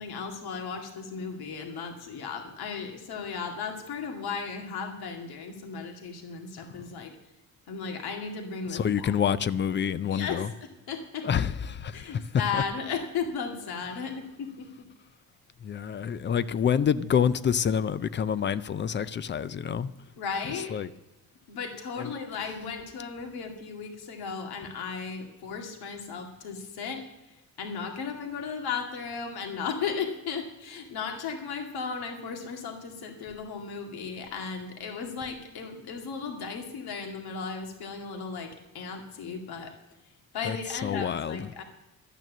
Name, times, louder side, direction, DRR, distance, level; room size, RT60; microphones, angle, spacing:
voice 1, 0.0-7.1 7.7-9.2 10.1-11.5 11.9-14.9 20.2-20.7 21.5-39.7 40.3-41.6, left 5 dB, 90° left, 3 dB, 2.1 m, -35 dB
voice 2, 8.7-10.5 11.2-12.0 15.6-19.9 20.7-20.9 22.0-22.1 40.5-40.6 40.8-41.4, left 8 dB, 30° left, 16 dB, 0.4 m, -27 dB
12.5 x 9.2 x 7.3 m, 1.0 s
cardioid pair, 165°, 37 cm